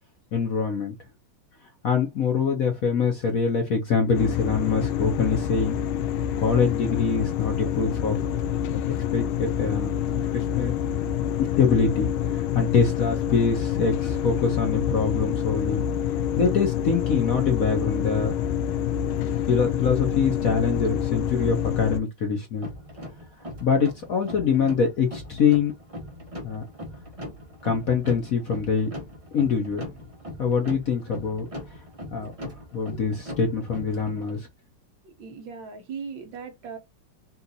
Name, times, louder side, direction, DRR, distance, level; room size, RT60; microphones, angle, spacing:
voice 1, 0.3-0.9 1.8-5.7 6.4-8.2 8.4-8.8 9.1-9.9 10.3-10.7 11.4-15.8 16.4-18.4 19.4-22.7 23.6-25.7 26.4-26.6 27.6-28.9 29.3-29.8 30.4-31.5 32.1-34.5, left 5 dB, 55° left, 1.0 m, -24 dB
sound 1, 4.1-22.0, left 9 dB, 80° left, 1.4 m, -27 dB
sound 2, 22.6-34.4, equal, 25° right, 0.8 m, -40 dB
voice 2, 35.0-36.8, right 5 dB, 65° right, 1.5 m, -38 dB
4.3 x 2.6 x 4.0 m
omnidirectional pair, 2.3 m